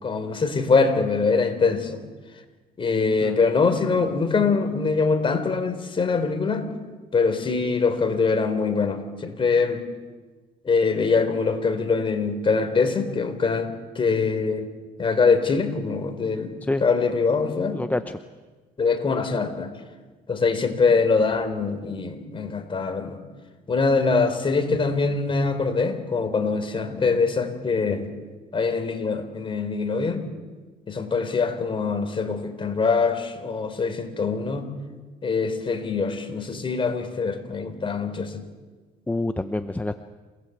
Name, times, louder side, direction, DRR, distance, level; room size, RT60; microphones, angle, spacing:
voice 1, 0.0-2.0 2.8-6.7 7.1-9.8 10.6-13.7 14.0-14.7 15.0-17.8 18.8-19.7 20.3-23.2 23.7-28.1 28.5-30.2 30.9-34.6 35.2-38.4, left 4 dB, 30° left, 7 dB, 4.0 m, -23 dB
voice 2, 17.7-18.2 39.1-39.9, left 2 dB, 10° left, 8 dB, 0.9 m, -27 dB
28.5 x 19.0 x 8.1 m, 1.3 s
cardioid pair, 110°, 17 cm